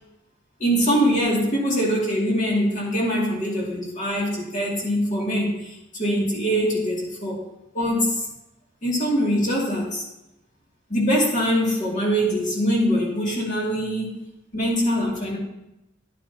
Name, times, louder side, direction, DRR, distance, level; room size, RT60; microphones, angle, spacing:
voice 1, 0.6-7.4 7.7-8.3 8.8-10.0 10.9-14.2 14.5-15.4, equal, 40° left, -3 dB, 2.4 m, -23 dB
10.5 x 9.0 x 2.8 m, 0.90 s
head